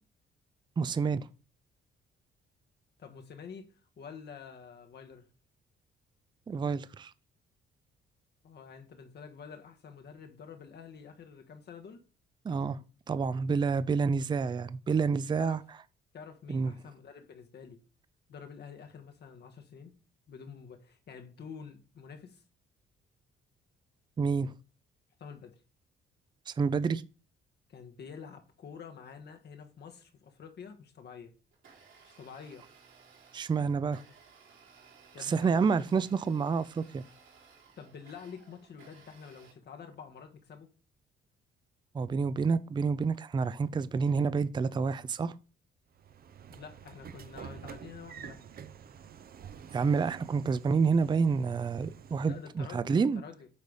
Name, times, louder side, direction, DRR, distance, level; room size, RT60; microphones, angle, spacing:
voice 1, 0.8-1.3 6.5-7.1 12.4-12.8 13.1-15.6 16.5-16.7 24.2-24.5 26.5-27.0 33.3-34.0 35.2-37.0 41.9-45.3 49.7-53.2, right 5 dB, 25° right, 0.4 m, -28 dB
voice 2, 3.0-5.3 8.4-12.0 15.4-15.6 16.1-17.8 18.3-19.9 20.3-22.4 25.2-25.6 27.7-31.3 32.0-32.7 35.1-35.7 36.0-36.1 37.8-40.7 46.5-48.5 52.3-53.5, left 6 dB, 55° left, 1.1 m, -48 dB
Domestic sounds home sounds, 31.5-39.5, right 5 dB, 75° right, 3.6 m, -58 dB
Train / Sliding door, 46.0-52.5, right 8 dB, 50° right, 0.7 m, -49 dB
8.3 x 3.3 x 5.3 m
cardioid pair, 90°, 20 cm